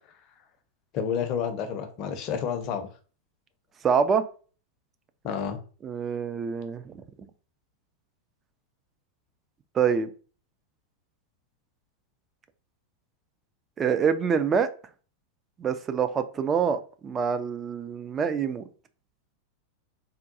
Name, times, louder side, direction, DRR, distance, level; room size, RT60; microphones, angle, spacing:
voice 1, 0.9-2.9 5.2-5.6, left 7 dB, 40° left, 7 dB, 0.6 m, -30 dB
voice 2, 3.8-4.3 5.8-6.9 9.7-10.1 13.8-14.7 15.6-18.7, right 6 dB, 25° right, 10 dB, 0.3 m, -26 dB
3.6 x 2.2 x 2.7 m, 0.38 s
figure-of-eight pair, 90°, 0 cm